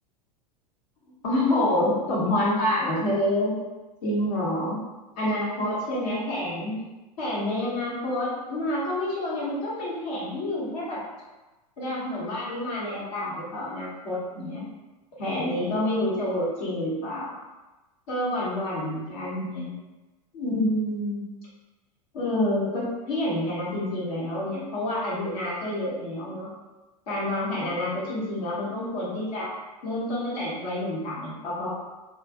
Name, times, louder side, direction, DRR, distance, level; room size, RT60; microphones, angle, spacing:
voice 1, 1.2-3.6 4.0-4.8 5.2-6.8 7.2-11.0 11.8-14.6 15.2-17.4 18.1-19.7 20.3-21.2 22.1-26.5 27.1-29.5 29.8-31.7, left 1 dB, 60° left, -7 dB, 1.0 m, -28 dB
2.5 x 2.2 x 2.6 m, 1.1 s
figure-of-eight pair, 85°, 20 cm